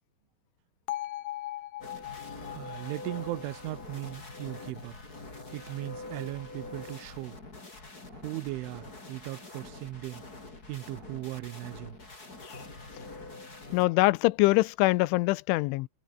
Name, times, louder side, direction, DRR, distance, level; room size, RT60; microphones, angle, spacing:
Bell, 0.9-5.0, left 15 dB, 70° left, 2.7 m, -40 dB
sound 1, 1.8-13.9, left 2 dB, 20° left, 5.2 m, -45 dB
voice 1, 2.5-5.0 5.5-7.4 8.1-10.2 10.7-12.0, right 18 dB, 85° right, 3.4 m, -38 dB
voice 2, 13.7-15.9, left 21 dB, 85° left, 3.1 m, -24 dB
omnidirectional pair, 5.4 m